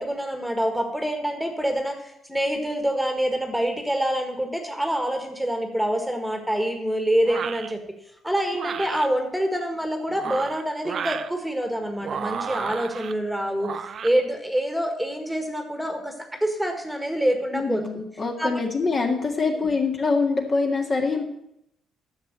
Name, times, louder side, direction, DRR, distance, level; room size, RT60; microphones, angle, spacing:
voice 1, 0.0-7.8 8.2-17.8 18.4-18.6, right 1 dB, ahead, 5 dB, 1.7 m, -26 dB
sound 1, 7.2-7.7 8.5-9.1 10.1-11.3 12.0-13.1 13.6-14.1, right 7 dB, 55° right, 0.6 m, -32 dB
voice 2, 17.5-21.2, left 4 dB, 40° left, 2 dB, 1.9 m, -24 dB
10.5 x 6.9 x 7.4 m, 0.79 s
cardioid pair, 90°, 0 cm